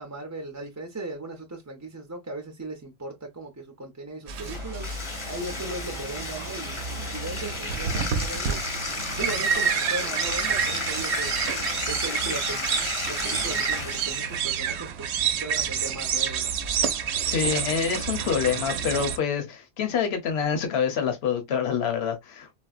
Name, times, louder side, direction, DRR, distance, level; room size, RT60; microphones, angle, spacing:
voice 1, 0.0-4.9 5.2-8.6 9.2-11.4 11.8-12.7 13.1-16.6, right 2 dB, 20° right, 0.5 m, -37 dB
Bathtub (filling or washing), 4.3-14.4, left 3 dB, 30° left, 0.7 m, -33 dB
sound 1, 4.3-19.2, right 7 dB, 90° right, 0.9 m, -29 dB
voice 2, 17.3-22.6, left 7 dB, 75° left, 1.0 m, -26 dB
4.1 x 2.1 x 2.3 m
omnidirectional pair, 1.1 m